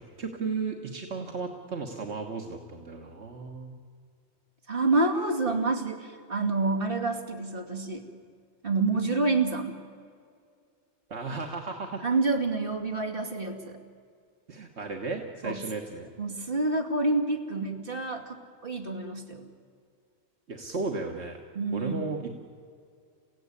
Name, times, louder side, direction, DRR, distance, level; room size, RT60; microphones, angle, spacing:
voice 1, 0.0-3.8 11.1-12.0 14.5-16.1 20.5-21.4 21.7-22.3, right 4 dB, 75° right, 2 dB, 1.8 m, -35 dB
voice 2, 4.7-8.0 8.6-9.8 12.0-13.8 15.4-15.6 16.2-19.5 21.5-22.0, right 3 dB, 50° right, 2 dB, 2.8 m, -28 dB
29.0 x 16.5 x 9.7 m, 2.3 s
omnidirectional pair, 1.2 m